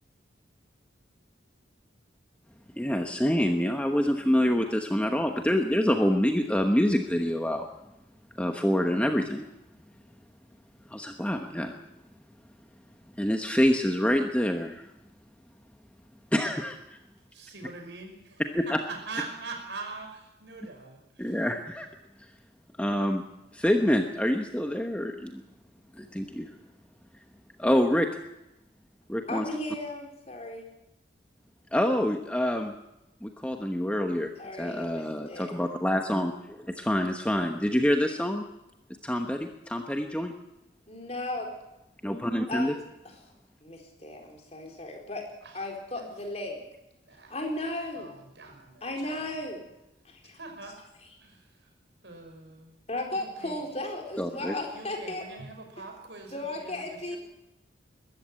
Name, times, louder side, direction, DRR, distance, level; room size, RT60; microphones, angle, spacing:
voice 1, 2.8-7.7 8.4-9.5 10.9-11.7 13.2-14.9 16.3-17.0 18.5-18.8 21.2-21.9 22.8-23.2 23.5-25.4 26.0-26.5 27.6-28.1 29.1-29.4 31.7-32.7 33.2-34.3 34.6-38.4 39.0-40.3 42.0-42.7 54.2-54.6, equal, 5° left, 4 dB, 1.0 m, -26 dB
voice 2, 17.3-21.5 45.4-45.6 45.9-46.1 47.1-47.5 48.0-49.4 50.2-50.8 51.2-51.7 52.0-52.8 53.1-53.7 54.7-57.2, right 3 dB, 70° right, 4 dB, 5.5 m, -43 dB
voice 3, 29.3-30.7 34.4-35.5 40.9-41.5 42.5-43.1 43.6-45.2 45.5-46.6 47.3-48.1 48.8-49.6 50.0-50.4 52.9-55.3 56.3-57.2, left 1 dB, 35° left, 2 dB, 4.2 m, -35 dB
22.0 x 14.0 x 8.9 m, 0.93 s
head